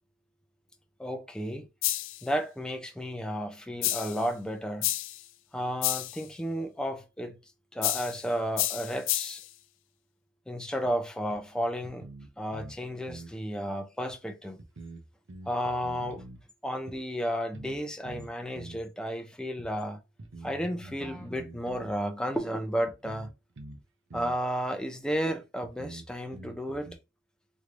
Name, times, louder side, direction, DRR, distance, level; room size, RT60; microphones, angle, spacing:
voice 1, 1.0-1.7 2.2-4.9 5.5-7.4 7.7-9.4 10.5-12.1 12.4-14.6 15.5-16.3 16.6-20.0 20.4-23.3 24.1-27.0, equal, 5° left, 0.5 m, -33 dB
sound 1, 1.8-2.2 3.8-4.2 4.8-5.2 5.8-6.2 7.8-8.2 8.6-9.5, left 15 dB, 70° left, 0.3 m, -30 dB
sound 2, 10.8-10.9 11.3-11.4 11.8-12.8 13.1-13.3 14.1-14.2 14.6-16.4 16.9-17.0 17.5-17.8 18.0-18.8 19.6-19.7 20.2-22.0 22.3-22.4 22.9-23.8 24.1-24.4 25.1-25.2 25.6-27.0, right 2 dB, 65° right, 0.7 m, -45 dB
3.2 x 3.1 x 2.5 m
head